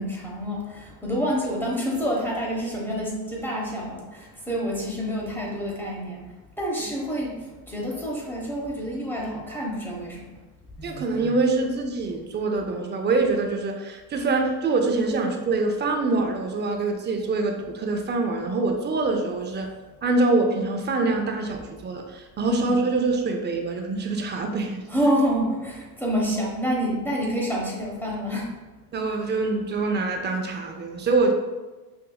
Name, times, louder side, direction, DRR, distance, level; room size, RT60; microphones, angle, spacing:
voice 1, 0.0-6.2 6.6-10.3 10.8-11.1 22.4-22.8 24.9-28.5, equal, 5° left, -3 dB, 1.0 m, -28 dB
voice 2, 10.8-19.7 20.0-24.8 28.9-31.3, right 3 dB, 25° right, 3 dB, 0.5 m, -25 dB
5.6 x 2.6 x 2.3 m, 1.2 s
supercardioid pair, 105°, 43 cm